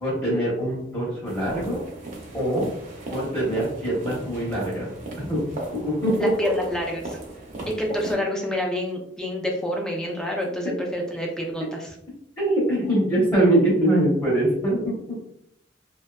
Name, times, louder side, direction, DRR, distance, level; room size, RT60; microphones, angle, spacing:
voice 1, 0.0-1.8 2.3-2.6 3.1-4.9 5.2-5.4 5.7-6.5 12.4-14.9, right 1 dB, 20° left, -6 dB, 0.8 m, -23 dB
sound 1, 1.2-8.1, right 2 dB, 45° right, 0.6 m, -37 dB
voice 2, 6.2-7.2 7.8-11.9, equal, 5° left, -1 dB, 0.4 m, -28 dB
2.6 x 2.2 x 2.2 m, 0.76 s
head